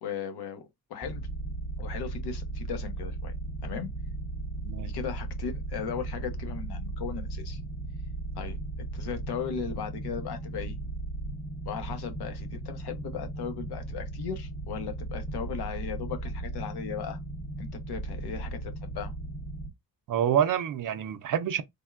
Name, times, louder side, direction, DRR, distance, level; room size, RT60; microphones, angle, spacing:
voice 1, 0.0-0.6 0.9-1.2 1.8-3.3 3.6-3.9 4.8-7.6 8.3-8.6 8.9-10.8 11.7-17.2 17.6-19.1, left 7 dB, 85° left, 0.9 m, -37 dB
sound 1, 1.0-19.7, right 2 dB, 15° right, 0.7 m, -36 dB
voice 2, 20.1-21.6, right 9 dB, 55° right, 0.5 m, -27 dB
3.5 x 2.1 x 2.3 m
cardioid pair, 135°, 38 cm